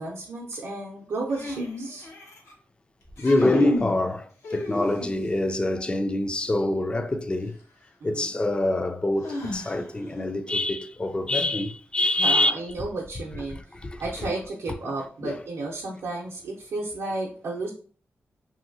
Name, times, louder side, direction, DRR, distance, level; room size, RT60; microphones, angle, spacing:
voice 1, 0.0-2.1 8.0-8.4 12.2-13.6 14.0-17.7, right 2 dB, 80° right, 0.6 m, -33 dB
sound 1, 1.3-2.5 3.1-4.0 4.4-5.3 7.3-7.4 9.2-10.1, left 1 dB, 90° left, 0.9 m, -33 dB
voice 2, 3.2-7.6 8.0-12.5 13.5-14.0 14.8-15.0 15.2-15.4, left 1 dB, 20° left, 0.3 m, -25 dB
3.0 x 2.7 x 2.6 m
wide cardioid pair, 95°, 5 cm